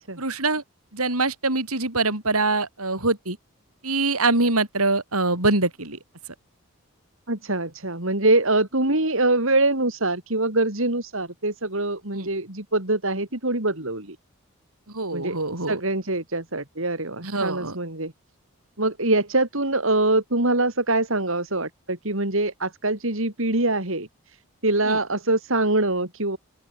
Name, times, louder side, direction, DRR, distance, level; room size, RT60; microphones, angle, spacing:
voice 1, 0.2-0.6 0.9-3.4 3.8-6.0 12.1-12.3 14.9-15.8 17.2-17.7 24.9-25.0, right 3 dB, 80° right, 6.3 m, -24 dB
voice 2, 7.3-14.2 15.1-15.4 15.7-18.1 18.8-24.1 24.6-26.4, right 2 dB, 60° right, 3.7 m, -24 dB
open air
head